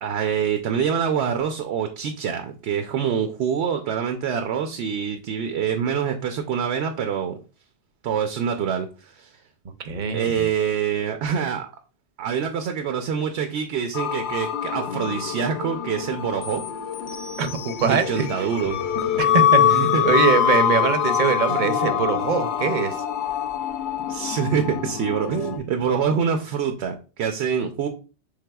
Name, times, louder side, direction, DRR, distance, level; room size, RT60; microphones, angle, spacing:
voice 1, 0.0-7.3 8.0-9.3 10.1-11.7 12.2-16.6 17.8-18.8 19.6-20.0 21.5-21.7 24.1-27.9, right 7 dB, 80° right, 6 dB, 0.9 m, -25 dB
voice 2, 9.8-10.5 17.4-18.5 19.2-23.0, right 6 dB, 50° right, 9 dB, 0.7 m, -23 dB
sound 1, 13.9-25.6, left 9 dB, 90° left, 0.9 m, -24 dB
6.5 x 3.6 x 2.3 m, 0.34 s
omnidirectional pair, 1.1 m